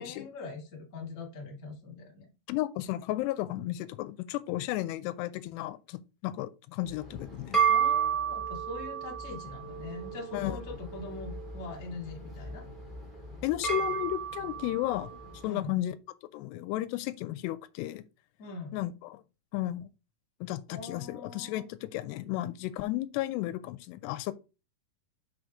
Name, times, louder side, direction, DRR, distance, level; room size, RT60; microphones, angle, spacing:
voice 1, 0.0-2.3 7.7-12.6 15.4-15.8 18.4-18.7 20.7-21.7, left 3 dB, 55° left, 0.8 m, -42 dB
voice 2, 2.5-7.6 10.3-10.6 13.4-15.9 16.3-18.1 18.7-19.2 19.5-19.9 20.4-24.3, left 15 dB, 85° left, 2.6 m, -33 dB
sound 1, 6.9-15.4, right 7 dB, ahead, 1.9 m, -32 dB
6.2 x 5.1 x 3.5 m
omnidirectional pair, 4.9 m